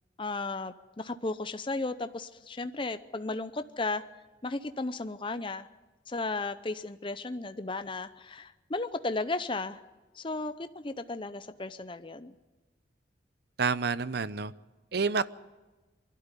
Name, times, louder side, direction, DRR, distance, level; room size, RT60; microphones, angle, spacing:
voice 1, 0.2-4.0 4.4-5.7 6.1-9.8 10.1-12.3, left 3 dB, 25° left, 11 dB, 0.7 m, -35 dB
voice 2, 13.6-14.5 14.9-15.3, right 4 dB, 55° right, 16 dB, 0.6 m, -28 dB
23.0 x 12.5 x 9.8 m, 1.2 s
head